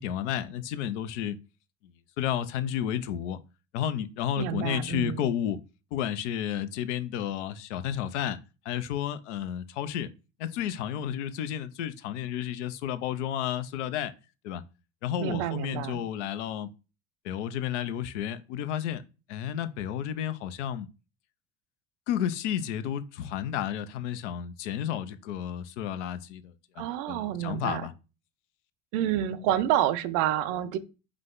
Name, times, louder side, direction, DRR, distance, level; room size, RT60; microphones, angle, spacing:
voice 1, 0.0-1.4 1.8-3.4 3.7-5.6 5.9-8.4 8.6-10.1 10.4-14.1 14.4-14.6 15.0-16.7 17.2-19.0 19.3-20.9 22.1-27.9, left 10 dB, 75° left, 0.6 m, -32 dB
voice 2, 4.4-5.2 15.2-16.0 26.8-27.9 28.9-30.8, right 11 dB, 60° right, 0.7 m, -28 dB
4.9 x 2.2 x 3.8 m
hypercardioid pair, 75°, 36 cm